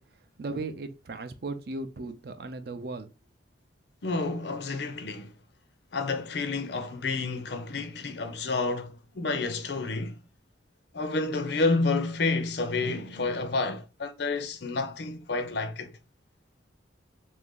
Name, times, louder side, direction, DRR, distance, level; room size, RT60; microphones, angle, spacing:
voice 1, 0.0-3.1, right 3 dB, 55° right, 0.5 m, -37 dB
voice 2, 4.0-5.3 5.9-10.2 10.9-15.9, left 3 dB, 65° left, 0.6 m, -29 dB
3.3 x 2.6 x 3.6 m
head